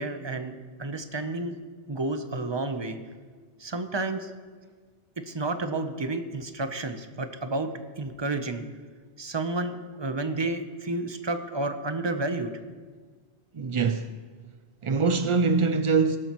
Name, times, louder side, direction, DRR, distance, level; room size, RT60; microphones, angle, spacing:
voice 1, 0.0-1.5 1.9-3.0 3.6-4.3 5.3-7.7 8.0-8.6 9.2-12.5, right 2 dB, 25° right, 0.7 m, -31 dB
voice 2, 13.5-14.1 14.8-16.2, right 4 dB, 55° right, 0.3 m, -23 dB
17.5 x 12.5 x 3.0 m
omnidirectional pair, 1.2 m